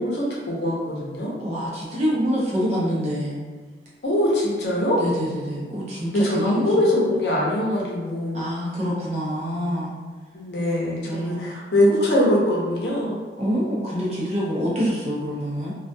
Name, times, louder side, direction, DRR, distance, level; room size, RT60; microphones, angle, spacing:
voice 1, 0.0-1.3 4.0-5.0 6.1-8.5 10.3-13.2, left 1 dB, 70° left, -4 dB, 0.7 m, -22 dB
voice 2, 1.4-3.4 5.0-6.6 8.3-9.9 11.1-11.5 13.4-15.7, equal, 40° right, -6 dB, 0.6 m, -26 dB
2.3 x 2.2 x 2.5 m, 1.5 s
head